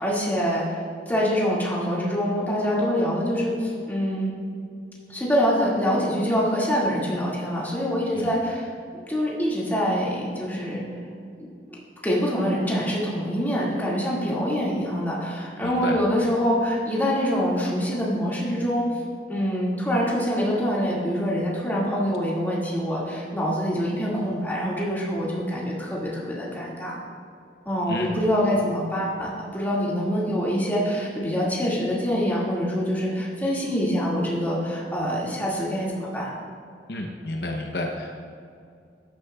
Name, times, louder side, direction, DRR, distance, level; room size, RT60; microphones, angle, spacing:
voice 1, 0.0-4.3 5.1-8.7 9.1-10.8 11.7-18.9 19.3-27.0 27.7-36.3, equal, 10° left, -6 dB, 2.1 m, -25 dB
voice 2, 15.6-16.0 27.9-28.2 36.9-38.2, left 1 dB, 65° left, 1 dB, 0.8 m, -31 dB
13.0 x 10.0 x 2.4 m, 2.3 s
head